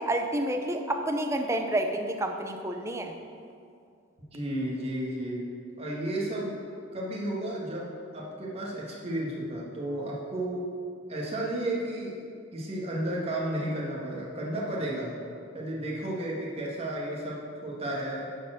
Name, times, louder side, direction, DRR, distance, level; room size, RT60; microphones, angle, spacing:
voice 1, 0.0-3.2, right 1 dB, 15° right, 5 dB, 0.6 m, -29 dB
voice 2, 4.3-5.4 5.8-6.6 6.9-7.9 8.1-10.6 11.1-12.2 12.5-15.1 15.5-18.3, right 1 dB, 30° right, -5 dB, 1.8 m, -32 dB
11.0 x 4.5 x 6.4 m, 2.4 s
head